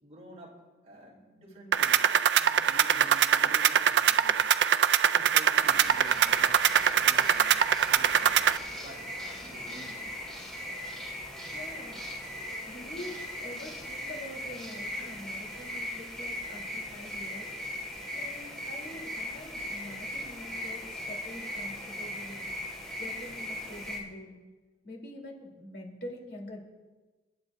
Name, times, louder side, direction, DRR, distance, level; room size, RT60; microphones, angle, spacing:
voice 1, 0.0-2.0 2.3-4.5 5.1-6.6 6.9-7.6 7.9-10.3, equal, 40° right, -2 dB, 3.4 m, -50 dB
sound 1, 1.7-8.6, right 9 dB, 75° right, 0.4 m, -23 dB
sound 2, 5.6-24.0, left 1 dB, 5° left, 4.0 m, -39 dB
voice 2, 11.5-12.0 12.7-17.5 18.1-22.5 23.0-24.4 24.8-26.6, left 1 dB, 70° left, -1 dB, 3.4 m, -45 dB
29.0 x 11.0 x 2.6 m, 1.2 s
head